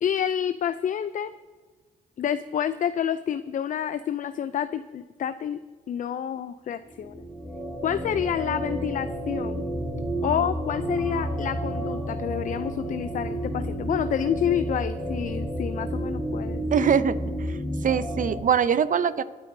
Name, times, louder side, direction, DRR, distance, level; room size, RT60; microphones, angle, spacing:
voice 1, 0.0-1.3 2.2-7.2 7.8-9.6 10.2-16.6, left 9 dB, 45° left, 12 dB, 0.4 m, -28 dB
sound 1, 6.8-18.4, right 1 dB, ahead, 2.1 m, -31 dB
voice 2, 16.7-17.2 17.5-17.6 17.8-19.2, right 7 dB, 45° right, 14 dB, 0.6 m, -22 dB
22.5 x 9.0 x 2.7 m, 1.4 s
cardioid pair, 75°, 19 cm